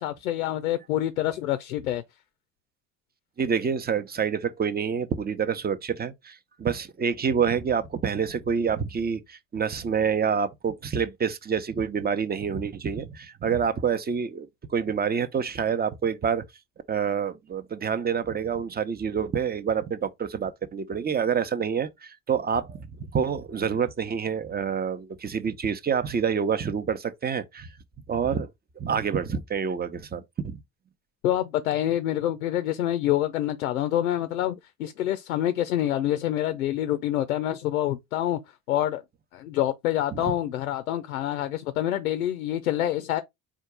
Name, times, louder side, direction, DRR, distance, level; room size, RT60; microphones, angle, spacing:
voice 1, 0.0-2.0 31.2-38.4 38.7-39.0 39.3-43.2, left 12 dB, 80° left, 0.5 m, -26 dB
voice 2, 3.4-16.4 16.9-22.9 23.1-27.7 28.1-28.5 28.8-30.6 40.1-40.3, right 7 dB, 25° right, 0.7 m, -27 dB
4.4 x 2.4 x 4.8 m
figure-of-eight pair, 55°, 42 cm